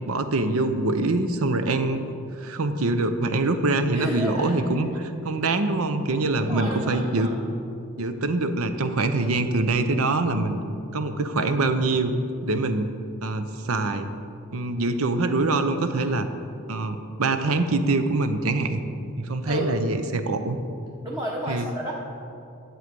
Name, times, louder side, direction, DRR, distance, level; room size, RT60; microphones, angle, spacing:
voice 1, 0.1-2.0 2.4-7.3 8.0-10.6 10.9-12.1 12.4-12.9 13.2-14.1 14.5-16.3 16.7-18.8 19.2-20.6 21.5-21.7, right 2 dB, 70° right, 8 dB, 0.7 m, -24 dB
voice 2, 3.9-4.6 6.4-7.4 19.4-19.7 21.0-21.9, equal, 15° right, -4 dB, 0.9 m, -32 dB
11.5 x 7.7 x 5.3 m, 2.6 s
head